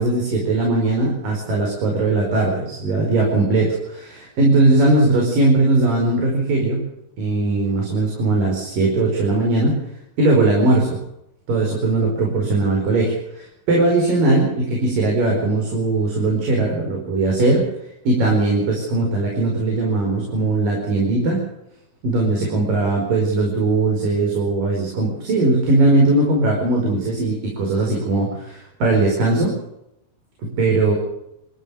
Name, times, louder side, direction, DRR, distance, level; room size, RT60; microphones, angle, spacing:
voice 1, 0.0-6.8 7.2-9.8 10.2-11.0 11.5-17.7 18.0-21.4 22.0-29.6 30.4-30.9, right 2 dB, 75° right, 0 dB, 6.7 m, -19 dB
27.5 x 15.0 x 6.6 m, 0.82 s
omnidirectional pair, 3.9 m